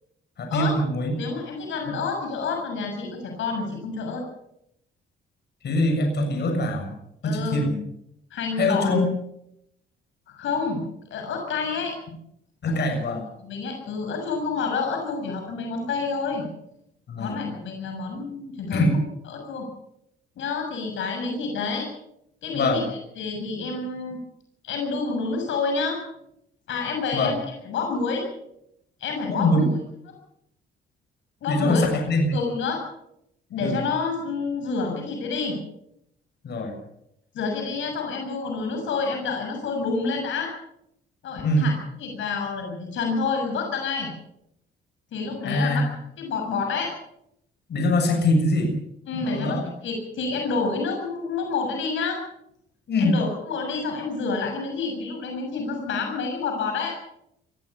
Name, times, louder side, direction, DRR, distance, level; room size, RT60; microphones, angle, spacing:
voice 1, 0.4-1.2 5.6-6.9 7.2-7.8 8.6-9.1 12.6-13.2 17.1-17.5 18.7-19.0 22.5-22.8 27.1-27.4 29.3-29.7 31.5-32.3 33.6-33.8 36.4-36.8 41.4-41.7 45.4-45.9 47.7-48.7 49.1-49.7 52.9-53.2, left 1 dB, 60° left, 3 dB, 7.2 m, -23 dB
voice 2, 1.2-4.2 7.2-7.6 8.3-8.9 10.3-10.8 11.1-12.1 13.4-16.4 17.2-18.9 19.3-19.6 20.4-21.9 22.4-24.2 24.6-26.0 26.7-27.4 27.6-28.2 29.0-29.7 31.4-31.8 32.3-32.8 33.5-35.6 37.3-40.5 41.2-41.7 42.0-44.1 45.1-45.8 46.2-46.9 49.1-52.2 53.0-56.9, left 4 dB, 75° left, 2 dB, 6.7 m, -28 dB
22.5 x 16.0 x 7.2 m, 0.77 s
cardioid pair, 90°, 20 cm